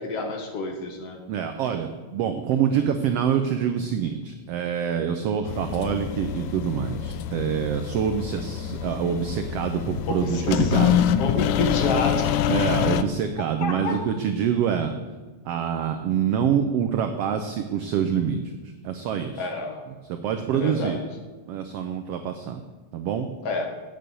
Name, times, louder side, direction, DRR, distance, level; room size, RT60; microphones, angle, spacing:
voice 1, 0.0-1.2 10.1-10.7 11.2-12.4 13.6-14.0 19.4-19.8 20.5-21.0 23.4-23.6, left 3 dB, 60° left, 4 dB, 1.9 m, -29 dB
voice 2, 1.3-11.0 12.5-14.9 15.4-18.4 18.8-19.5 20.1-21.0 21.5-22.6 22.9-23.3, right 8 dB, 90° right, 7 dB, 1.3 m, -26 dB
sound 1, 5.5-13.0, left 10 dB, 85° left, 2.0 m, -25 dB
8.9 x 6.8 x 7.6 m, 1.3 s
omnidirectional pair, 3.5 m